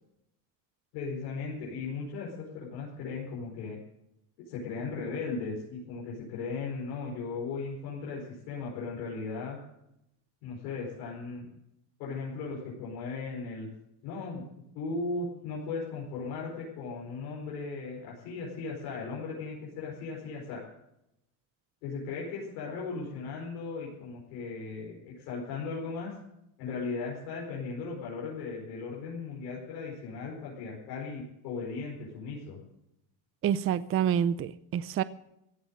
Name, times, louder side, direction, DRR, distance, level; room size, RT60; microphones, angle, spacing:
voice 1, 0.9-3.8 4.4-9.6 10.4-11.5 12.0-13.7 14.0-14.4 14.7-20.6 21.8-26.1 26.6-32.6, left 4 dB, 85° left, -5 dB, 5.1 m, -37 dB
voice 2, 33.4-35.0, right 9 dB, 30° right, 16 dB, 0.5 m, -27 dB
16.0 x 8.0 x 9.1 m, 0.83 s
cardioid pair, 125°, 43 cm